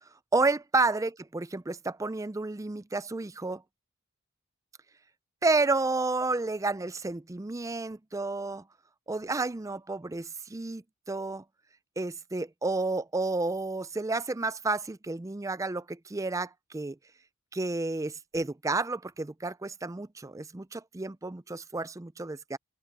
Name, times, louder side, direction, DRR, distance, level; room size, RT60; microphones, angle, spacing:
voice 1, 0.3-3.6 5.4-8.6 9.1-11.4 12.0-17.0 17.5-22.6, right 3 dB, 15° right, 0.4 m, -31 dB
head